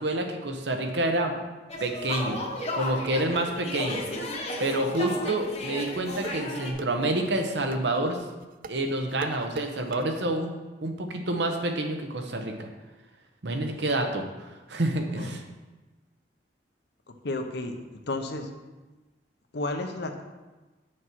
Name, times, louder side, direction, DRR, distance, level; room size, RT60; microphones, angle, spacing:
voice 1, 0.0-1.4 1.8-2.4 2.7-4.0 4.6-8.2 8.7-10.5 10.8-12.7 13.4-14.2 14.7-15.4, right 1 dB, 75° right, 4 dB, 1.0 m, -28 dB
sound 1, 1.7-6.7, left 1 dB, 40° left, 1.0 m, -34 dB
sound 2, 2.6-10.0, right 3 dB, 50° right, 0.4 m, -42 dB
voice 2, 17.2-17.7 18.1-18.5 19.5-20.2, left 2 dB, 65° left, 5 dB, 0.9 m, -32 dB
7.2 x 6.4 x 4.6 m, 1.2 s
head